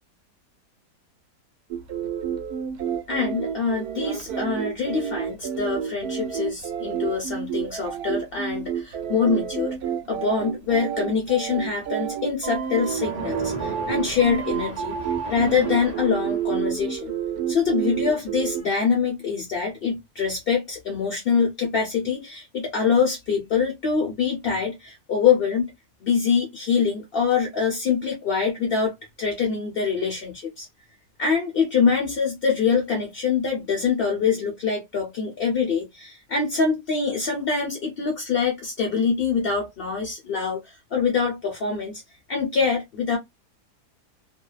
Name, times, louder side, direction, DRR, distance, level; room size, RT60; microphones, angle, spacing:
sound 1, 1.7-18.6, right 8 dB, 75° right, 1.1 m, -29 dB
voice 1, 3.1-9.8 10.1-14.9 15.3-17.1 17.5-25.7 26.0-30.7 31.2-42.0 42.3-43.2, left 6 dB, 60° left, 0.6 m, -24 dB
Splash splatter, 12.8-16.8, right 3 dB, 40° right, 0.5 m, -37 dB
2.7 x 2.1 x 2.2 m
omnidirectional pair, 1.7 m